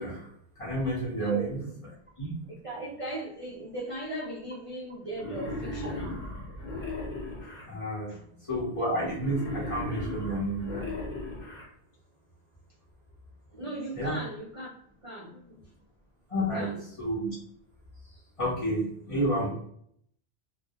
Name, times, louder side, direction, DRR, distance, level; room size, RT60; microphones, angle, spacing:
voice 1, 0.0-2.4 7.7-8.1 8.5-10.9 13.9-14.2 16.3-16.7 17.0-17.3 18.4-19.5, right 1 dB, 35° left, -6 dB, 0.7 m, -31 dB
voice 2, 2.6-6.2 8.1-8.2 13.5-14.7 15.0-15.6 16.5-16.8, right 2 dB, 45° right, -7 dB, 0.5 m, -37 dB
Wild animals, 5.2-7.6 9.2-11.6, left 2 dB, 55° left, 1.0 m, -36 dB
2.2 x 2.1 x 2.7 m, 0.66 s
omnidirectional pair, 1.1 m